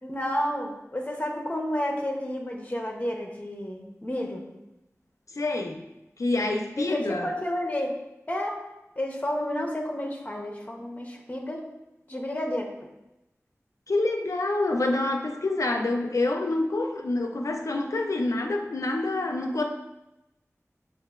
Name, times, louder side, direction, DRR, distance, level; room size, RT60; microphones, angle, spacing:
voice 1, 0.0-4.5 6.8-7.9 8.3-8.6 9.0-11.6 12.1-12.7, left 1 dB, 25° left, 0 dB, 0.7 m, -31 dB
voice 2, 5.4-5.8 6.2-7.3 13.9-19.6, left 2 dB, 75° left, 3 dB, 0.5 m, -27 dB
6.5 x 2.5 x 2.4 m, 0.93 s
wide cardioid pair, 60°, 6 cm